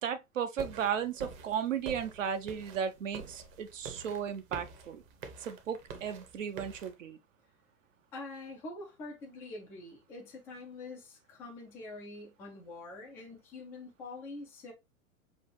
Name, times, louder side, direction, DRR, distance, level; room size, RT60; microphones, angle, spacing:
voice 1, 0.0-5.0 5.4-7.2, right 8 dB, 60° right, 0.7 m, -35 dB
sound 1, 0.6-6.9, right 5 dB, 35° right, 0.8 m, -47 dB
voice 2, 8.1-14.7, left 2 dB, 5° left, 0.3 m, -45 dB
6.1 x 2.4 x 3.1 m
figure-of-eight pair, 100°, 43 cm